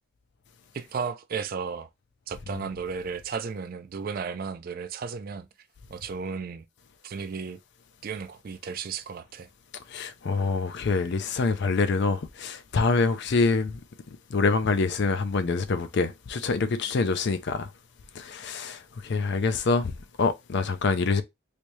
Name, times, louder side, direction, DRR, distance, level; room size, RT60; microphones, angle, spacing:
voice 1, 0.7-1.9 2.3-5.5 5.9-6.7 7.0-7.6 8.0-9.5, right 5 dB, 45° right, 0.3 m, -34 dB
voice 2, 9.9-13.8 14.3-17.7 18.1-21.2, left 4 dB, 55° left, 0.4 m, -26 dB
3.3 x 2.7 x 3.0 m
head